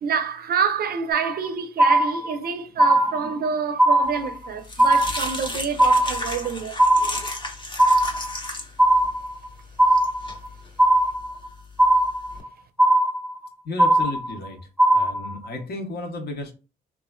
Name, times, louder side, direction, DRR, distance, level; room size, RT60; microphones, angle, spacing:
voice 1, 0.0-6.8, right 6 dB, 50° right, 0.5 m, -27 dB
sound 1, 1.1-1.5 1.8-2.5 2.8-3.5 3.8-4.5 4.8-5.5 5.8-6.5 6.8-7.5 7.8-8.5 8.8-9.5 9.8-10.5 10.8-11.5 11.8-12.5 12.8-13.5 13.8-14.5 14.8-15.5, right 1 dB, 5° right, 0.5 m, -19 dB
sound 2, 4.1-12.4, left 2 dB, 25° left, 0.8 m, -35 dB
voice 2, 13.6-14.6 14.9-16.5, left 2 dB, 55° left, 0.8 m, -32 dB
3.1 x 2.4 x 2.2 m
cardioid pair, 90°, 20 cm